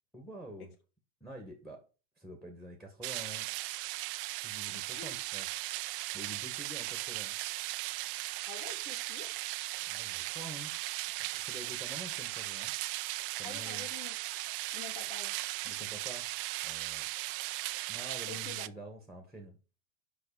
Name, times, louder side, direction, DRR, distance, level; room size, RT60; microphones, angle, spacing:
voice 1, 0.1-0.7 1.2-1.8 2.1-3.5 4.4-5.6 6.1-7.3 9.8-10.8 11.2-12.7 13.4-13.9 15.6-16.3 16.6-17.1 17.9-19.6, right 1 dB, ahead, 1.7 m, -47 dB
sound 1, 3.0-18.7, right 19 dB, 40° right, 0.4 m, -37 dB
voice 2, 4.7-5.1 8.4-9.3 13.4-14.1 14.5-15.9 17.8-17.9 18.3-18.7, left 4 dB, 85° left, 3.0 m, -48 dB
6.6 x 5.7 x 7.0 m
supercardioid pair, 135°, 44 cm